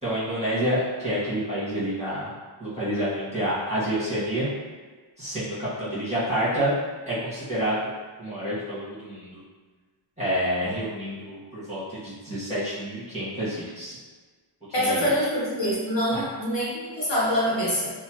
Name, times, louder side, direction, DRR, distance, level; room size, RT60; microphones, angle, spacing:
voice 1, 0.0-2.3 2.6-4.5 5.2-6.7 7.1-7.8 8.2-9.4 10.2-14.0 14.8-15.1 16.1-16.3, equal, 15° right, -10 dB, 1.4 m, -28 dB
voice 2, 14.7-17.9, equal, 60° left, -7 dB, 0.9 m, -25 dB
3.2 x 2.0 x 2.9 m, 1.4 s
wide cardioid pair, 45°, 49 cm